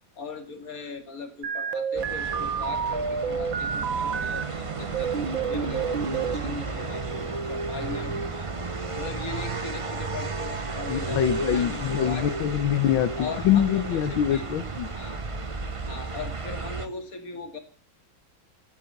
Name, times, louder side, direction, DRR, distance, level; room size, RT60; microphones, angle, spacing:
voice 1, 0.2-12.3 13.2-14.5 14.9-15.2 15.9-17.6, left 4 dB, 45° left, 8 dB, 2.9 m, -39 dB
sound 1, 1.4-4.4 4.9-6.5, right 6 dB, 75° right, 2.3 m, -29 dB
sound 2, 1.9-16.9, right 3 dB, 25° right, 0.7 m, -33 dB
Singing / Musical instrument, 2.2-11.3, right 8 dB, 50° right, 2.0 m, -42 dB
voice 2, 10.9-14.9, left 10 dB, 80° left, 11 dB, 1.8 m, -24 dB
15.5 x 10.0 x 9.1 m, 0.43 s
omnidirectional pair, 2.1 m